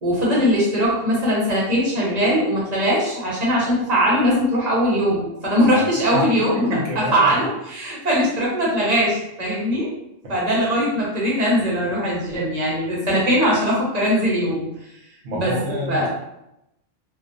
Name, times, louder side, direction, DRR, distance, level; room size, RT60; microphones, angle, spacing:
voice 1, 0.0-6.6 6.9-9.9 10.3-14.7 15.3-15.5 15.9-16.1, equal, 35° right, -6 dB, 0.9 m, -20 dB
voice 2, 6.5-7.3 15.2-16.1, equal, 65° right, -3 dB, 1.0 m, -27 dB
2.9 x 2.0 x 2.5 m, 0.84 s
omnidirectional pair, 1.3 m